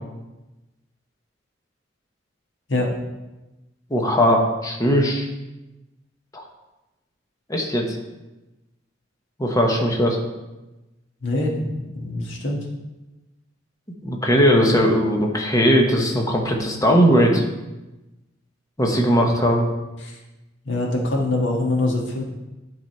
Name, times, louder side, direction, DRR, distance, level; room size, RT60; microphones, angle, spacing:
voice 1, 3.9-5.3 6.3-6.4 7.5-7.8 9.4-10.2 14.0-17.4 18.8-19.7, equal, 20° left, 1 dB, 1.0 m, -19 dB
voice 2, 11.2-12.6 20.0-20.2 20.6-22.2, left 2 dB, 75° left, -1 dB, 1.6 m, -24 dB
10.5 x 4.0 x 4.4 m, 1.0 s
head